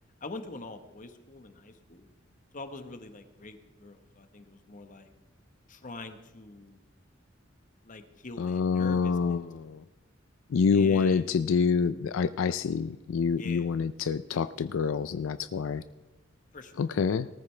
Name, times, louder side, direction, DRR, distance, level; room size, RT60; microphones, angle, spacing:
voice 1, 0.2-2.1 2.5-5.1 5.7-6.8 7.8-9.4 10.7-11.3 13.3-13.7 16.5-16.9, left 3 dB, 40° left, 8 dB, 1.1 m, -44 dB
voice 2, 8.4-9.8 10.5-15.8 16.8-17.3, left 5 dB, 80° left, 13 dB, 0.4 m, -27 dB
19.0 x 14.0 x 3.3 m, 1.1 s
head